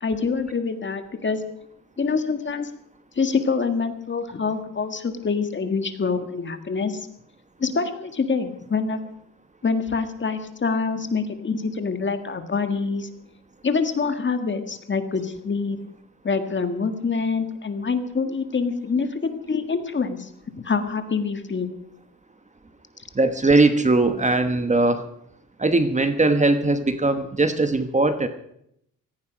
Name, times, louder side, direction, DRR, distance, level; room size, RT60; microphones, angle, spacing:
voice 1, 0.0-1.4 2.0-2.7 3.2-7.1 7.6-9.0 9.6-13.1 13.6-15.8 16.2-20.3 20.6-21.7, left 5 dB, 35° left, 8 dB, 1.8 m, -25 dB
voice 2, 23.1-25.0 25.6-28.3, right 2 dB, 20° right, 9 dB, 1.2 m, -20 dB
17.5 x 15.0 x 5.2 m, 0.74 s
cardioid pair, 110°, 34 cm